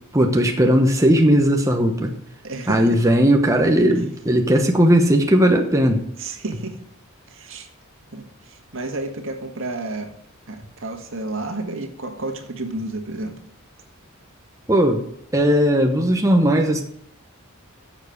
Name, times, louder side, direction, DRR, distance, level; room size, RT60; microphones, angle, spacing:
voice 1, 0.1-2.1 2.7-6.0 14.7-15.0 15.3-16.8, equal, 15° right, 3 dB, 1.0 m, -17 dB
voice 2, 2.4-3.0 6.2-6.8 7.3-7.7 8.1-10.1 10.5-13.4, right 2 dB, 65° right, 5 dB, 1.8 m, -31 dB
10.5 x 7.3 x 6.5 m, 0.71 s
head